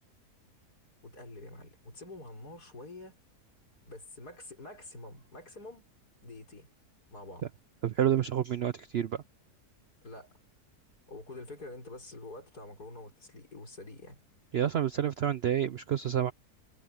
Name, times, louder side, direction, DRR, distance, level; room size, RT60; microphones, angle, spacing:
voice 1, 1.0-3.2 3.8-5.9 6.2-6.7 7.1-7.4 10.0-10.3 11.1-14.2, left 2 dB, 75° left, 6.2 m, -47 dB
voice 2, 7.8-9.2 14.5-16.3, right 10 dB, 65° right, 0.6 m, -29 dB
omnidirectional pair, 1.7 m